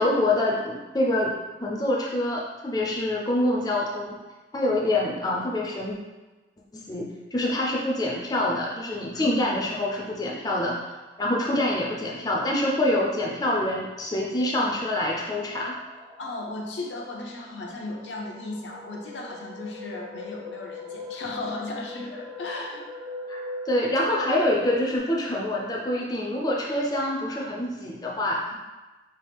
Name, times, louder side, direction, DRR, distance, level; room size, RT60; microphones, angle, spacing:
voice 1, 0.0-4.2 4.5-6.0 6.9-10.8 11.2-15.8 23.3-28.4, left 1 dB, 20° left, -3 dB, 0.4 m, -26 dB
sound 1, 14.1-25.0, left 2 dB, 25° right, 0.6 m, -40 dB
voice 2, 16.2-22.9, left 2 dB, 80° left, 0 dB, 0.6 m, -36 dB
4.5 x 2.4 x 3.4 m, 1.2 s
head